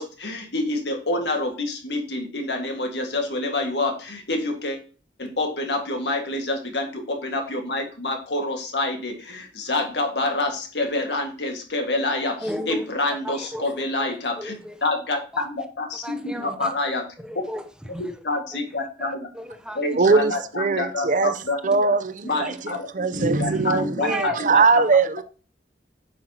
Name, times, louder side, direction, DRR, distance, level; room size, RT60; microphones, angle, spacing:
voice 1, 0.0-4.8 5.2-14.5 14.8-17.0 18.2-19.2 19.8-21.8 22.2-24.8, left 2 dB, 70° left, 1.9 m, -27 dB
voice 2, 12.4-14.8 15.3-15.7 16.0-16.7 17.2-18.2 18.5-18.6 19.0-20.2 22.3-22.6 23.5-23.7 24.0-24.4, equal, 5° right, 0.7 m, -36 dB
voice 3, 19.9-21.3 21.6-25.2, right 4 dB, 45° right, 0.6 m, -21 dB
8.8 x 5.8 x 2.9 m
head